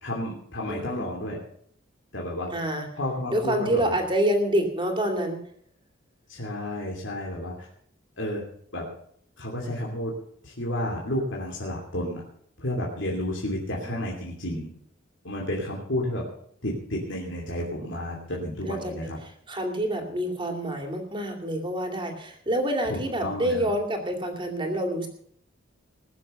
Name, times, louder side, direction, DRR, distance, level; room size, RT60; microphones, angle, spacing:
voice 1, 0.0-1.4 2.1-2.5 3.0-4.0 6.3-7.5 8.2-8.4 8.7-8.9 9.4-10.1 10.4-12.2 12.6-14.7 15.2-16.2 16.6-19.2 22.9-23.7, left 1 dB, 65° left, -2 dB, 2.9 m, -31 dB
voice 2, 0.7-1.0 2.5-2.9 3.3-5.4 13.8-14.0 18.3-18.4 18.6-18.9 19.2-25.1, right 1 dB, 25° right, 5 dB, 2.5 m, -27 dB
20.5 x 7.1 x 6.9 m, 0.64 s
head